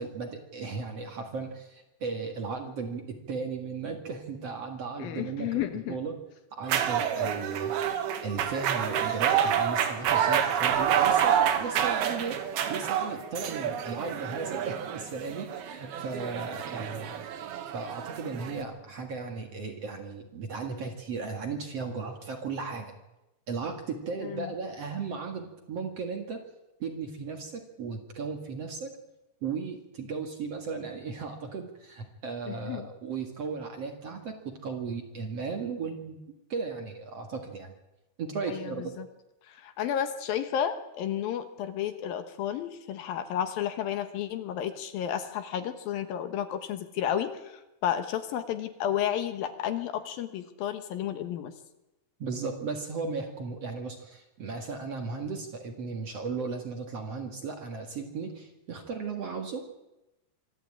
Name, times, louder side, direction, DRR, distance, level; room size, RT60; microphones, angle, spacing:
voice 1, 0.0-5.6 5.9-6.2 6.5-7.7 8.2-12.4 12.7-17.1 17.7-22.9 23.5-26.4 26.8-29.0 29.4-36.2 36.5-37.7 38.2-38.9 52.2-59.6, right 4 dB, 45° right, 4 dB, 2.4 m, -36 dB
voice 2, 5.0-6.0 24.2-24.5 32.5-32.9 38.5-39.1 39.5-51.5, left 10 dB, 70° left, 9 dB, 2.8 m, -32 dB
sound 1, 6.6-18.6, right 9 dB, 70° right, 3.5 m, -28 dB
25.0 x 14.0 x 8.8 m, 0.96 s
omnidirectional pair, 4.6 m